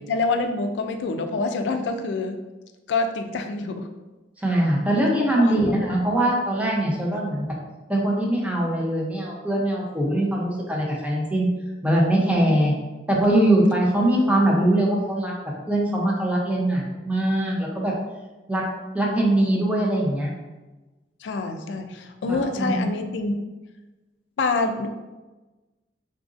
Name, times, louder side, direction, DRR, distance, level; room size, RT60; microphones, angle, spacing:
voice 1, 0.1-2.4 2.9-3.9 5.4-5.6 7.1-7.2 12.5-12.6 21.2-23.3 24.4-24.9, left 3 dB, 75° left, 7 dB, 0.3 m, -26 dB
voice 2, 4.4-7.5 7.9-11.5 11.8-12.7 13.1-15.3 15.7-17.9 18.5-18.7 18.9-20.3 22.3-22.8, right 1 dB, 10° right, -3 dB, 0.6 m, -22 dB
3.8 x 2.5 x 2.5 m, 1.1 s
head